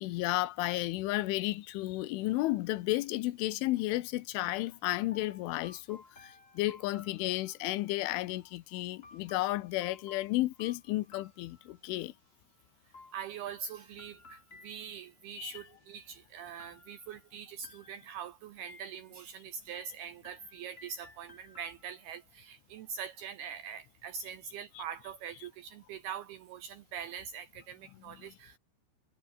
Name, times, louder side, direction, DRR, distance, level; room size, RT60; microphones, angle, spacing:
voice 1, 0.0-12.1 15.3-15.5 24.8-24.9 28.1-28.2, left 18 dB, 85° left, 3.4 m, -33 dB
sound 1, 5.1-7.9 9.0-12.0 12.9-15.1 15.5-16.2 16.6-17.3 17.6-18.3 18.7-19.3 19.7-22.2, left 3 dB, 30° left, 1.0 m, -57 dB
voice 2, 13.1-28.6, right 7 dB, 80° right, 2.3 m, -43 dB
omnidirectional pair, 5.6 m